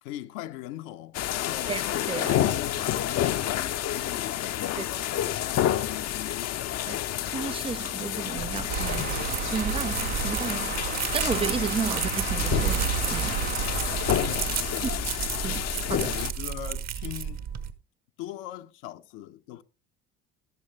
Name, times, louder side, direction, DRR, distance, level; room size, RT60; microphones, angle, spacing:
voice 1, 0.0-1.8 2.1-5.1 5.4-7.0 14.1-15.7 16.0-17.5 18.2-19.6, left 14 dB, 70° left, 1.1 m, -40 dB
sound 1, 1.1-16.3, left 12 dB, 50° left, 0.9 m, -29 dB
voice 2, 7.3-9.1 9.5-10.7 11.1-13.4 15.4-15.6 15.9-16.1, right 6 dB, 15° right, 0.5 m, -32 dB
sound 2, 8.4-17.7, right 8 dB, 50° right, 1.5 m, -33 dB
sound 3, 8.7-14.8, right 7 dB, 85° right, 2.0 m, -33 dB
13.5 x 12.0 x 3.4 m
hypercardioid pair, 65°, 33 cm